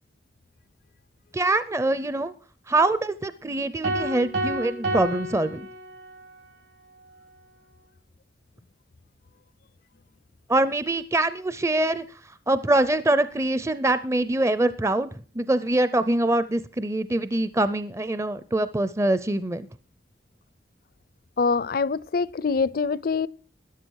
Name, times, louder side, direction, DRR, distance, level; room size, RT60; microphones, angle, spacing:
voice 1, 1.3-2.3 2.7-5.7 10.5-12.0 12.5-19.7, right 2 dB, 15° right, 0.5 m, -24 dB
sound 1, 3.8-6.3, right 1 dB, 75° right, 3.4 m, -30 dB
voice 2, 21.4-23.3, left 4 dB, 55° left, 0.5 m, -24 dB
13.5 x 11.0 x 4.6 m
head